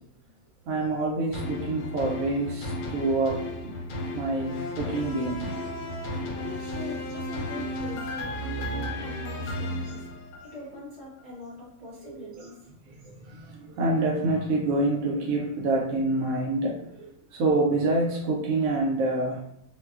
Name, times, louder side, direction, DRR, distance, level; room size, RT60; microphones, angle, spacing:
voice 1, 0.7-3.8 4.1-5.5 12.0-12.4 13.0-19.4, right 2 dB, 90° right, -1 dB, 0.7 m, -27 dB
sound 1, 1.3-10.7 11.2-11.3, left 1 dB, 80° left, 1.4 m, -34 dB
voice 2, 6.3-10.0 10.5-12.5, left 2 dB, 30° right, -7 dB, 1.1 m, -42 dB
3.9 x 2.2 x 2.3 m, 0.76 s
omnidirectional pair, 2.0 m